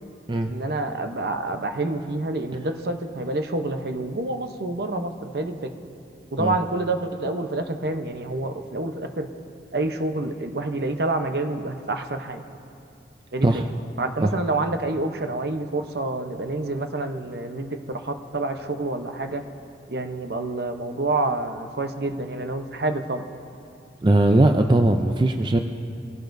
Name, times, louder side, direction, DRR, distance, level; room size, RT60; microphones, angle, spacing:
voice 1, 0.4-5.7 6.3-9.3 9.7-12.4 13.3-13.5 14.0-19.4 19.9-23.3, right 2 dB, 60° right, 6 dB, 0.8 m, -28 dB
voice 2, 24.0-25.6, right 2 dB, 25° right, 5 dB, 0.4 m, -19 dB
22.5 x 16.5 x 2.6 m, 2.6 s
head